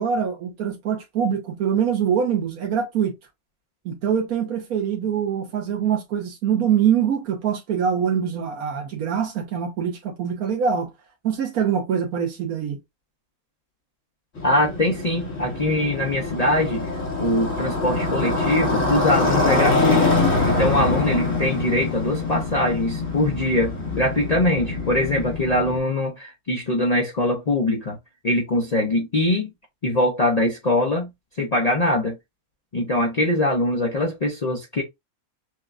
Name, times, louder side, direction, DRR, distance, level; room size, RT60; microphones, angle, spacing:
voice 1, 0.0-3.1 3.8-10.9 11.2-12.8, right 8 dB, 85° right, 1.4 m, -24 dB
Motorcycle, 14.4-25.8, left 3 dB, 65° left, 2.0 m, -24 dB
voice 2, 14.4-16.9 17.2-20.0 20.4-28.0 28.2-29.5 29.8-31.1 31.4-32.2 32.7-34.8, left 1 dB, 40° left, 0.6 m, -22 dB
6.1 x 2.3 x 2.5 m
omnidirectional pair, 1.5 m